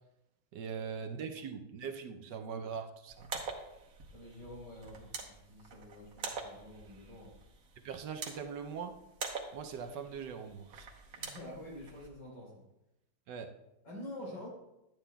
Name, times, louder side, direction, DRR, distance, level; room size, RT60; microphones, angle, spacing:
voice 1, 0.5-3.3 7.8-9.0 9.5-10.9 13.3-13.5, right 6 dB, 70° right, 6 dB, 1.2 m, -41 dB
voice 2, 2.2-2.5 4.1-7.3 11.2-12.6 13.8-14.5, left 1 dB, 80° left, -4 dB, 4.5 m, -48 dB
sound 1, 3.1-12.1, right 4 dB, 55° right, 1.3 m, -45 dB
10.5 x 8.9 x 2.2 m, 0.89 s
omnidirectional pair, 2.1 m